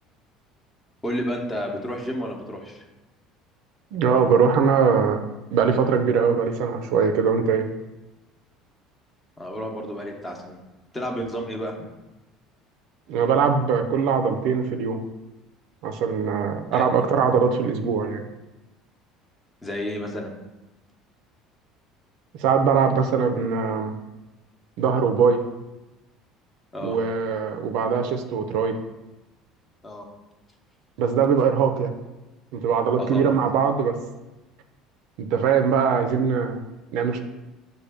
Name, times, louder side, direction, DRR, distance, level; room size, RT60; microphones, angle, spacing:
voice 1, 1.0-2.8 9.4-10.6 10.9-11.7 16.7-17.1 19.6-20.3 26.7-27.0 29.8-30.1 33.0-33.3, equal, 15° left, 2 dB, 0.7 m, -31 dB
voice 2, 3.9-5.2 5.5-7.7 13.1-15.0 15.8-18.2 22.4-23.9 24.8-25.4 26.8-28.8 31.0-31.9 32.5-34.0 35.2-36.6 36.9-37.2, right 6 dB, 70° right, 6 dB, 0.4 m, -21 dB
6.4 x 2.2 x 3.4 m, 1.0 s
cardioid pair, 120°, 0 cm